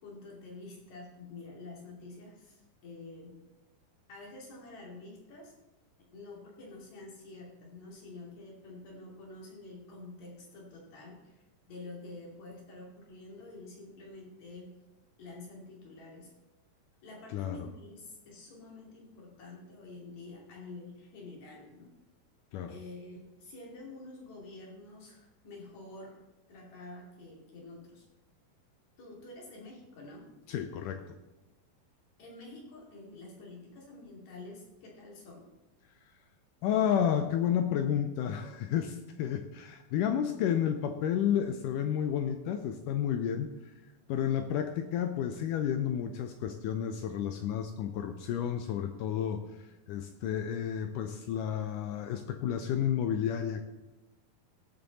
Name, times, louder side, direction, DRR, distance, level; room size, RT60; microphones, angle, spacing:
voice 1, 0.0-3.3 4.1-5.5 6.1-14.7 15.2-16.3 17.0-21.9 22.7-26.2 26.5-28.1 29.0-30.3 32.2-35.5, left 2 dB, 50° left, -2 dB, 3.7 m, -48 dB
voice 2, 17.3-17.7 22.5-22.7 30.5-31.2 36.6-43.7 44.1-53.6, left 9 dB, 80° left, 7 dB, 2.0 m, -31 dB
17.5 x 7.0 x 4.1 m, 1.1 s
omnidirectional pair, 4.2 m